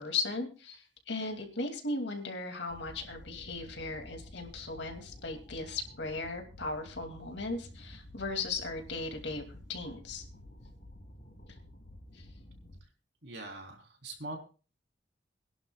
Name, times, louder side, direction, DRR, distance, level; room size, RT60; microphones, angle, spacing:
voice 1, 0.0-10.2 12.1-12.3, left 3 dB, 70° left, 4 dB, 2.5 m, -37 dB
sound 1, 2.7-12.8, left 1 dB, 45° left, 2.8 m, -51 dB
voice 2, 13.2-14.4, right 2 dB, 65° right, 2 dB, 3.6 m, -42 dB
25.5 x 11.0 x 2.3 m, 0.35 s
head